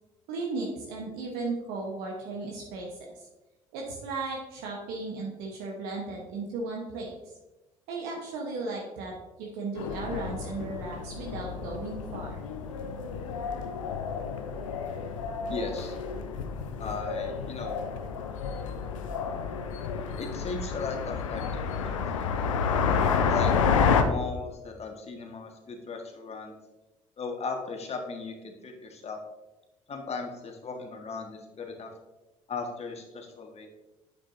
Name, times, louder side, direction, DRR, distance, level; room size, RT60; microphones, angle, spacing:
voice 1, 0.3-3.3 3.7-7.1 7.9-12.4, right 3 dB, 70° right, -1 dB, 1.1 m, -35 dB
sound 1, 9.8-24.0, left 6 dB, 80° left, 0.6 m, -30 dB
voice 2, 15.5-15.9 16.8-17.7 20.2-22.3 23.3-23.5 24.0-26.5 27.2-29.2 29.9-31.9 32.5-33.7, left 4 dB, 40° left, 3 dB, 1.6 m, -37 dB
9.0 x 6.8 x 2.7 m, 1.1 s
figure-of-eight pair, 55°, 16 cm